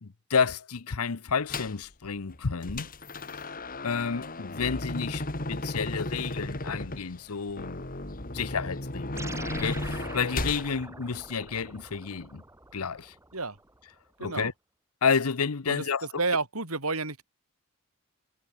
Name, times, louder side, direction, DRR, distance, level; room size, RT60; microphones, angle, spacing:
voice 1, 0.0-2.9 3.8-7.8 8.3-9.3 9.6-12.4 12.7-13.1 14.2-14.5 15.0-16.1, left 5 dB, 85° left, 0.8 m, -30 dB
sound 1, 1.5-1.8 2.3-10.7, left 2 dB, 40° left, 3.0 m, -35 dB
sound 2, 9.2-13.8, right 2 dB, 15° right, 2.0 m, -44 dB
voice 2, 14.2-14.5 15.7-15.8 16.2-17.2, right 3 dB, 80° right, 6.0 m, -30 dB
head